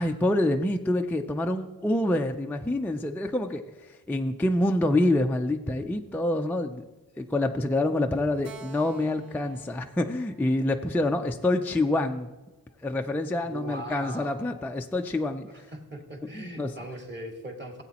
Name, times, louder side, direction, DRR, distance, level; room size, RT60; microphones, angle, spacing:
voice 1, 0.0-6.8 7.2-12.3 12.8-15.5 16.3-16.7, left 1 dB, 5° left, 4 dB, 0.3 m, -27 dB
Keyboard (musical), 8.4-11.9, right 5 dB, 60° right, 0.9 m, -52 dB
voice 2, 13.4-14.5 15.7-17.8, right 1 dB, 30° right, 1 dB, 1.8 m, -40 dB
15.5 x 8.3 x 2.9 m, 1.1 s
wide cardioid pair, 140°, 38 cm